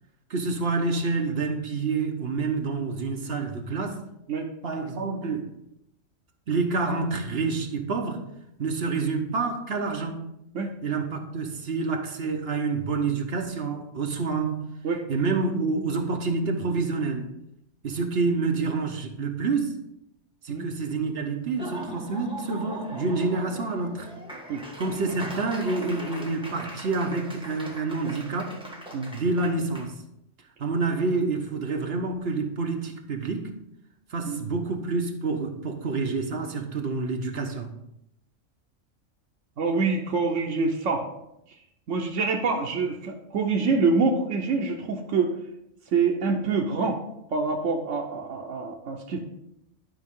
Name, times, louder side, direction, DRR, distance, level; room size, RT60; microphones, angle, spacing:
voice 1, 0.3-4.0 4.6-5.5 6.5-8.2 8.6-10.3 10.8-14.7 15.1-17.3 17.8-19.7 20.4-24.1 24.8-28.6 29.1-30.0 30.6-33.5 34.1-37.7, right 4 dB, 55° right, 1.2 m, -28 dB
Laughter / Applause, 21.4-29.9, right 1 dB, 5° right, 1.3 m, -40 dB
voice 2, 39.6-41.0 41.9-45.4 45.9-47.0 47.3-49.2, right 4 dB, 75° right, 1.2 m, -26 dB
11.0 x 5.3 x 3.7 m
omnidirectional pair, 1.3 m